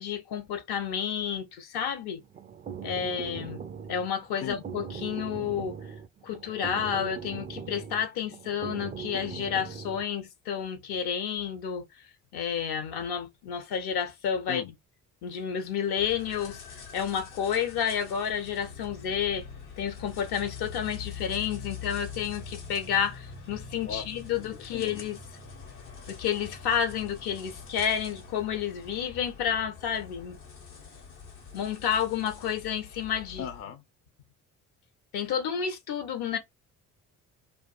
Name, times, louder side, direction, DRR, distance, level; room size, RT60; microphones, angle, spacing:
voice 1, 0.0-2.2 2.8-3.6 3.9-5.8 6.2-11.9 12.3-14.6 15.2-16.6 16.9-19.4 19.8-25.2 26.1-30.4 31.5-33.5 35.1-36.4, left 8 dB, 65° left, 0.8 m, -30 dB
sound 1, 2.2-10.0, right 7 dB, 25° right, 0.3 m, -40 dB
sound 2, 16.0-33.6, left 6 dB, 90° left, 1.3 m, -44 dB
voice 2, 24.7-25.0 33.4-33.8, left 8 dB, 35° left, 0.5 m, -37 dB
2.5 x 2.3 x 2.3 m
hypercardioid pair, 55°, 42 cm